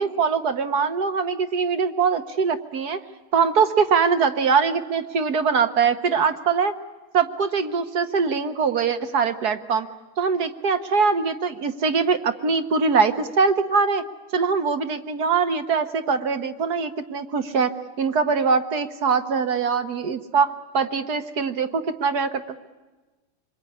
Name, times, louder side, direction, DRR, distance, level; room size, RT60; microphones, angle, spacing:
voice 1, 0.0-3.0 3.3-6.7 7.1-9.9 10.2-14.0 14.3-17.7 18.0-22.4, right 5 dB, 55° right, 10 dB, 1.4 m, -22 dB
27.0 x 22.0 x 9.7 m, 1.2 s
omnidirectional pair, 2.4 m